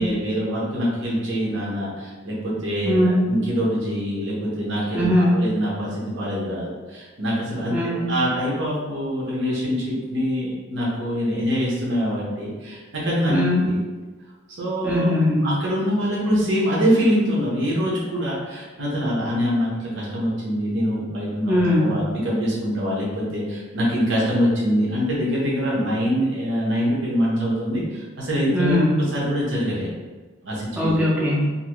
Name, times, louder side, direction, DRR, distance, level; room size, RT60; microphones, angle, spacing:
voice 1, 0.0-7.8 8.1-13.3 13.6-13.8 14.6-15.1 15.4-28.7 29.1-29.9 30.4-30.9, equal, 60° right, -6 dB, 0.9 m, -24 dB
voice 2, 2.8-3.2 4.9-5.3 7.7-8.1 13.3-13.6 14.8-15.5 21.5-21.9 28.5-29.1 30.8-31.5, left 1 dB, 10° right, -6 dB, 0.6 m, -20 dB
2.7 x 2.6 x 2.9 m, 1.3 s
head